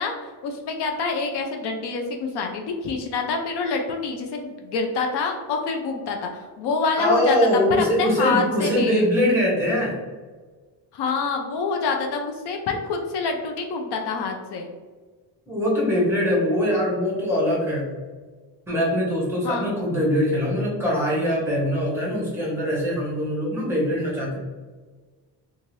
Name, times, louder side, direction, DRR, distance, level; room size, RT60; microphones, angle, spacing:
voice 1, 0.0-7.4 7.7-9.0 10.9-14.7 19.4-19.7, left 4 dB, 70° left, 3 dB, 0.5 m, -26 dB
voice 2, 7.0-9.9 15.5-17.9 18.7-24.4, equal, 5° right, -5 dB, 0.9 m, -22 dB
2.6 x 2.5 x 3.0 m, 1.4 s
cardioid pair, 180°, 41 cm